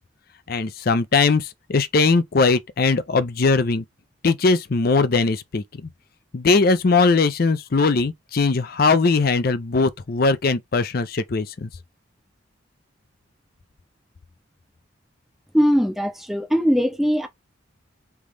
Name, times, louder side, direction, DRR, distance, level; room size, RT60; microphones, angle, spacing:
voice 1, 0.5-3.8 4.2-5.6 6.3-11.7, left 4 dB, 50° left, 0.5 m, -20 dB
voice 2, 15.5-17.3, equal, ahead, 0.7 m, -20 dB
3.5 x 3.1 x 3.7 m
head